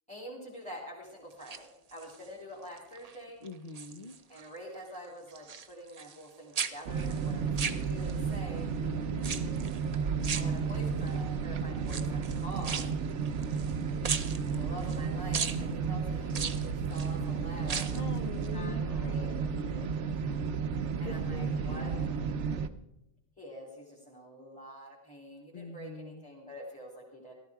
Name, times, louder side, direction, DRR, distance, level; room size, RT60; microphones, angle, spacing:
voice 1, 0.1-3.4 4.3-8.7 10.3-12.8 14.5-19.3 21.0-21.9 23.4-27.3, equal, 5° left, -4 dB, 2.5 m, -46 dB
sound 1, 1.3-2.3 2.8-3.2 3.5-4.5 4.7-6.3 6.5-8.3 9.2-9.8 10.2-11.1 11.8-13.7 14.0-15.0 15.3-15.6 16.3-17.1 17.6-18.1 18.4-18.5, right 6 dB, 40° right, 0.6 m, -37 dB
voice 2, 3.4-4.2 8.8-9.5 17.9-19.9 21.0-22.2 25.5-26.2, left 2 dB, 40° left, 9 dB, 0.7 m, -43 dB
sound 2, 6.9-22.7, right 5 dB, 70° right, 1.0 m, -32 dB
14.5 x 13.0 x 4.7 m, 0.87 s
omnidirectional pair, 1.3 m